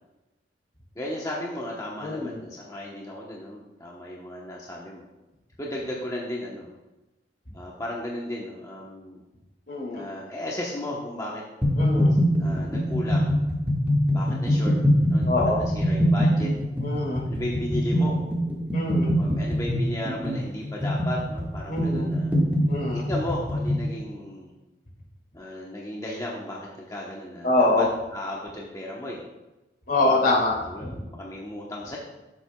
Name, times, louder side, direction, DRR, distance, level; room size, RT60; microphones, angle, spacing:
voice 1, 0.9-5.0 5.6-6.7 7.5-9.2 9.9-11.4 12.4-13.3 14.1-14.7 15.0-16.5 17.2-18.2 19.2-22.3 22.9-24.5 25.3-27.9 28.1-29.2 30.0-30.3 30.7-32.0, left 1 dB, 20° left, -4 dB, 1.0 m, -35 dB
voice 2, 2.0-2.4 9.7-10.0 11.8-12.1 15.2-15.6 16.8-17.2 18.7-19.1 21.7-22.1 22.7-23.0 27.4-27.9 29.9-30.9, left 2 dB, 55° left, -3 dB, 2.4 m, -24 dB
sound 1, 11.6-23.9, equal, 10° right, 1.7 m, -23 dB
11.5 x 7.8 x 2.3 m, 1.0 s
head